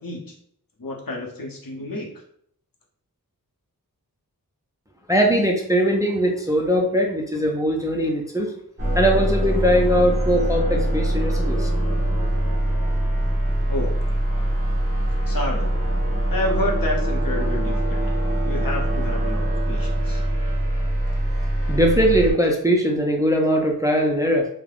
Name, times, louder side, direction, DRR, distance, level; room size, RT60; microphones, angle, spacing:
voice 1, 0.0-0.3 0.8-2.1 13.7-13.9 15.3-15.7 16.3-18.0 18.4-20.2, left 1 dB, 65° left, 0 dB, 0.7 m, -29 dB
voice 2, 5.1-8.5 9.0-11.7 21.7-24.5, equal, 10° right, 1 dB, 0.4 m, -20 dB
sound 1, 8.8-22.3, right 1 dB, 35° right, 0.9 m, -23 dB
3.2 x 2.1 x 2.3 m, 0.66 s
wide cardioid pair, 50°, 37 cm